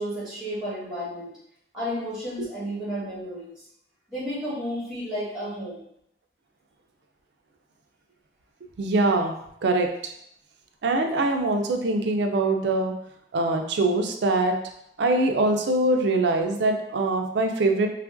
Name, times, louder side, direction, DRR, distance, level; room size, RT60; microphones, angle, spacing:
voice 1, 0.0-1.3 1.7-3.6 4.1-5.8, equal, 5° right, -11 dB, 1.3 m, -32 dB
voice 2, 8.8-9.4 9.6-10.1 10.8-12.9 13.3-14.5 15.0-17.9, right 2 dB, 85° right, 4 dB, 0.4 m, -23 dB
2.9 x 2.4 x 2.5 m, 0.74 s
head